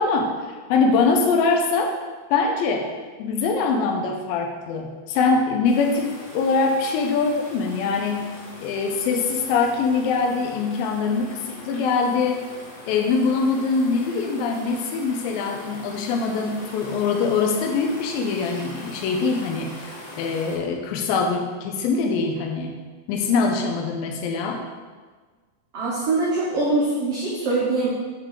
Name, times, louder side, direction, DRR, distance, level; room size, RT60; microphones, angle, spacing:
voice 1, 0.0-1.9 2.3-2.9 3.2-8.2 8.6-12.4 12.9-22.7 23.1-24.6, left 4 dB, 90° left, 2 dB, 2.5 m, -23 dB
sound 1, 5.6-20.6, left 1 dB, 60° left, 0.8 m, -41 dB
voice 2, 25.7-27.9, right 2 dB, 80° right, -4 dB, 1.3 m, -23 dB
7.4 x 6.8 x 3.7 m, 1.4 s
omnidirectional pair, 4.2 m